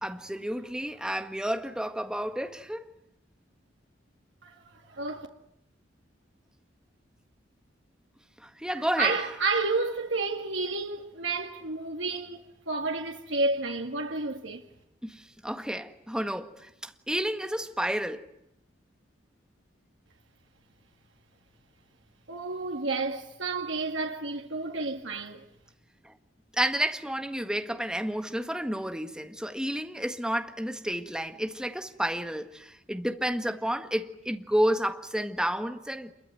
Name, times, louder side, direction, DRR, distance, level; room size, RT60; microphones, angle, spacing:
voice 1, 0.0-2.8 8.4-9.2 15.0-18.2 26.0-26.1 26.5-36.2, equal, 5° right, 1.7 m, -31 dB
voice 2, 4.4-5.3 8.7-14.7 22.3-25.4, right 3 dB, 90° right, 2.0 m, -31 dB
28.0 x 22.5 x 9.2 m
head